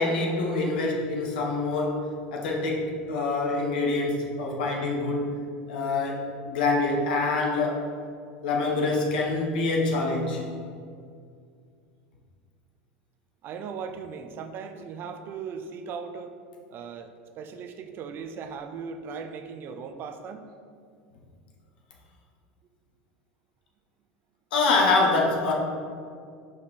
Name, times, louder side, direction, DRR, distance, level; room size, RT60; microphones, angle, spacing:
voice 1, 0.0-5.4 5.7-7.9 8.4-10.4 24.5-25.5, left 3 dB, 80° left, -1 dB, 1.2 m, -25 dB
voice 2, 13.4-16.3 16.7-20.5, right 6 dB, 45° right, 8 dB, 0.6 m, -38 dB
5.2 x 5.1 x 4.2 m, 2.3 s
hypercardioid pair, 95°, 5 cm